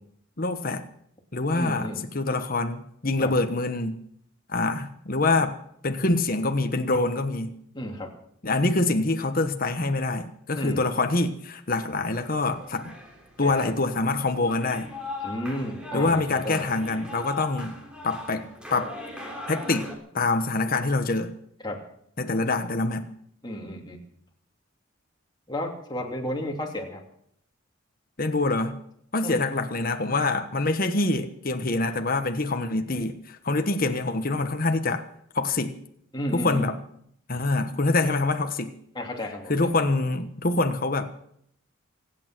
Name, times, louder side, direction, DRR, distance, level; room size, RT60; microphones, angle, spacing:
voice 1, 0.4-0.8 1.3-1.9 2.1-4.0 4.5-5.6 5.8-7.5 8.4-12.9 13.4-14.9 15.9-17.8 18.0-18.9 19.5-19.9 20.1-21.3 22.2-23.1 28.2-28.8 29.1-35.0 35.3-35.8 36.3-36.8 37.3-38.7 39.5-41.1, left 2 dB, 45° left, 6 dB, 1.2 m, -25 dB
voice 2, 1.5-2.0 3.2-3.3 7.7-8.1 10.6-10.8 13.4-13.7 15.2-16.6 21.6-21.8 23.4-24.0 25.5-27.0 29.2-29.4 36.1-36.7 38.9-39.7, left 1 dB, 20° left, 0 dB, 2.9 m, -32 dB
sound 1, 12.1-19.9, left 2 dB, 5° right, 3.4 m, -40 dB
25.5 x 8.8 x 6.1 m, 0.69 s
head